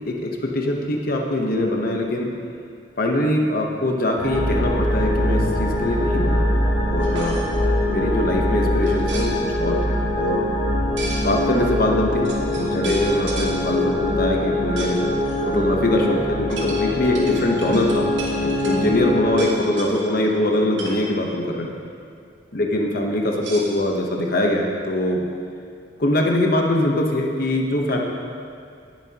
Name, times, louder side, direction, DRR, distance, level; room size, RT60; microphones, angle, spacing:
voice 1, 0.1-2.3 3.0-7.4 7.9-10.5 11.2-15.0 15.4-21.7 22.5-25.3 26.0-28.0, left 1 dB, 50° left, 1 dB, 1.0 m, -22 dB
sound 1, 4.2-19.4, left 1 dB, 75° left, 2.3 m, -23 dB
sound 2, 7.0-7.5 8.8-9.3 11.0-11.3 11.9-12.0 12.2-13.5 14.8-14.9 15.2-15.4 16.5-18.8 19.3-20.0 20.5-21.0 23.3-24.2, right 2 dB, 75° right, 1.8 m, -34 dB
18.5 x 7.3 x 2.9 m, 2.3 s
head